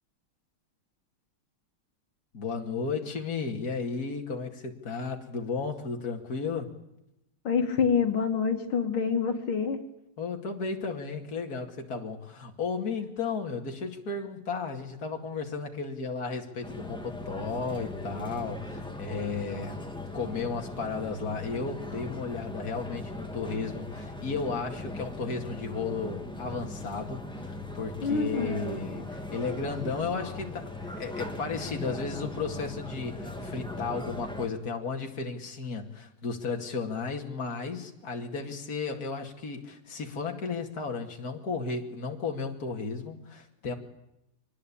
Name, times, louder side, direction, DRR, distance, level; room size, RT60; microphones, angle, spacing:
voice 1, 2.3-6.7 10.2-19.8 20.1-43.7, left 4 dB, 45° left, 2 dB, 2.7 m, -34 dB
voice 2, 7.4-9.8 28.0-28.6, left 6 dB, 75° left, 4 dB, 2.5 m, -26 dB
sound 1, 16.6-34.5, left 2 dB, ahead, 2.2 m, -39 dB
24.0 x 20.0 x 8.6 m, 0.87 s
omnidirectional pair, 2.3 m